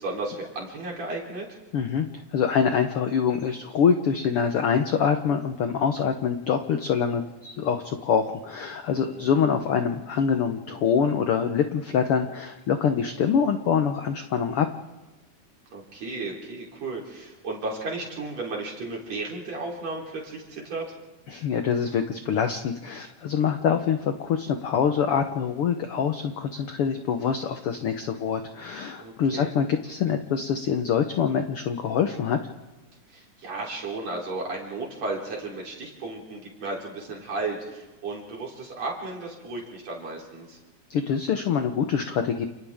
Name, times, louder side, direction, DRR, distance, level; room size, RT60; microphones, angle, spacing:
voice 1, 0.0-1.5 9.1-9.4 15.7-20.9 29.0-29.5 33.1-40.6, right 3 dB, 55° right, -2 dB, 4.7 m, -34 dB
voice 2, 1.7-2.1 2.3-14.7 21.3-32.4 40.9-42.5, left 7 dB, 65° left, 6 dB, 1.5 m, -25 dB
29.5 x 29.0 x 3.6 m, 1.1 s
omnidirectional pair, 3.5 m